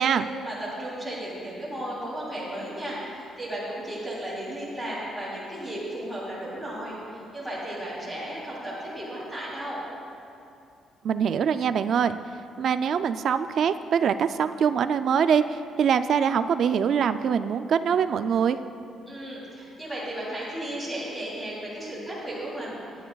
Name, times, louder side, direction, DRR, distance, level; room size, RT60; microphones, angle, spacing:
voice 1, 0.0-9.8 19.1-23.1, right 1 dB, ahead, -8 dB, 3.0 m, -34 dB
voice 2, 11.0-12.2 12.6-18.6, right 7 dB, 50° right, 11 dB, 0.3 m, -23 dB
21.5 x 10.0 x 2.3 m, 2.6 s
cardioid pair, 165°, 0 cm